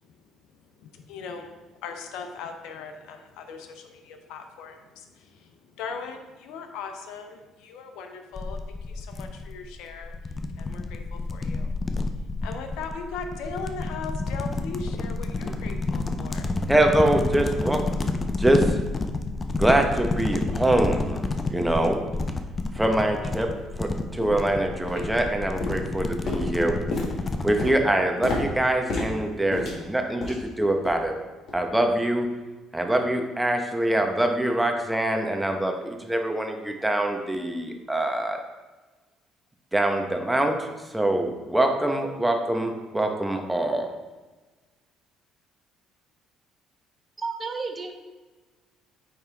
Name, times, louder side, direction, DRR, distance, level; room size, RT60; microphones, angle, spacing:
voice 1, 0.8-1.5 1.8-8.6 8.9-10.1 10.6-11.7 12.1-16.6, left 5 dB, 75° left, 6 dB, 0.6 m, -39 dB
sound 1, 8.4-27.7, left 3 dB, 30° left, 0.6 m, -30 dB
voice 2, 16.7-18.8 19.6-22.0 22.7-23.5 23.8-26.7 27.4-31.1 31.5-32.3 32.7-38.4 39.7-40.7 40.9-43.9, right 1 dB, 10° right, 3 dB, 1.0 m, -24 dB
sound 2, 22.2-22.3 22.9-23.0 23.5-23.7 24.2-24.5 24.9-25.3 25.6-30.5 30.8-31.1 31.5-31.7 32.2-32.3, left 2 dB, 55° left, 2.0 m, -32 dB
voice 3, 47.2-47.9, right 4 dB, 35° right, 4 dB, 1.0 m, -31 dB
9.0 x 3.6 x 3.5 m, 1.2 s
hypercardioid pair, 60°, 0 cm